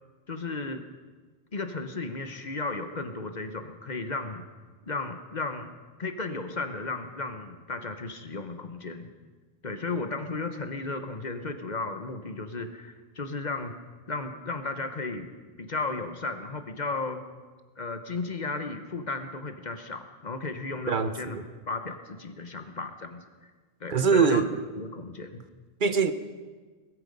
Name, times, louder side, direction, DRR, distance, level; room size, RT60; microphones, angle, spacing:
voice 1, 0.3-0.8 1.5-4.4 4.9-5.7 6.0-9.1 9.6-13.8 14.1-15.3 15.6-17.2 17.8-21.4 21.7-23.2 23.8-24.4 24.7-25.4, left 3 dB, 45° left, 8 dB, 1.1 m, -34 dB
voice 2, 20.9-21.4 23.9-24.5 25.8-26.1, right 5 dB, 55° right, 10 dB, 1.0 m, -23 dB
20.0 x 13.5 x 5.3 m, 1.4 s
omnidirectional pair, 1.1 m